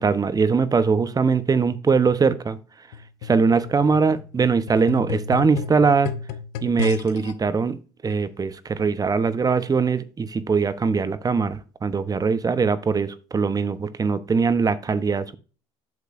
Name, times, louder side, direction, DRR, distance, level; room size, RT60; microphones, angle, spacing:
voice 1, 0.0-2.6 3.2-6.1 6.6-7.8 8.0-15.4, right 5 dB, 25° right, 13 dB, 0.8 m, -21 dB
sound 1, 2.9-7.3 8.1-8.2, left 7 dB, 85° left, 0.8 m, -33 dB
8.2 x 6.6 x 2.5 m, 0.36 s
supercardioid pair, 85°, 14 cm